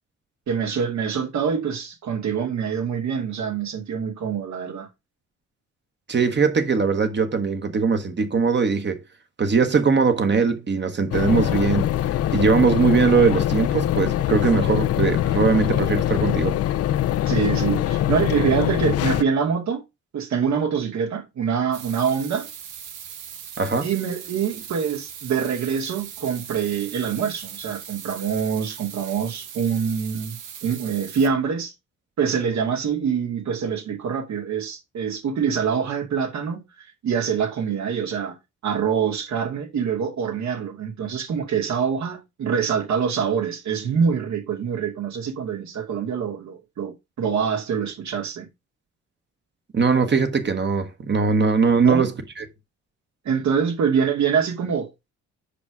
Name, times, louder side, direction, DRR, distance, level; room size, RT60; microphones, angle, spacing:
voice 1, 0.5-4.9 17.3-19.8 20.1-22.5 23.8-31.7 32.2-48.5 51.8-52.1 53.2-54.9, right 7 dB, 65° right, 2.4 m, -25 dB
voice 2, 6.1-9.0 9.4-11.9 12.3-16.6 23.6-23.9 49.7-52.1 52.4-52.5, right 5 dB, 35° right, 1.3 m, -20 dB
sound 1, 11.1-19.2, left 12 dB, 55° left, 0.5 m, -23 dB
sound 2, 21.7-31.3, right 8 dB, 90° right, 1.6 m, -39 dB
5.1 x 4.9 x 6.1 m
cardioid pair, 90°, 30 cm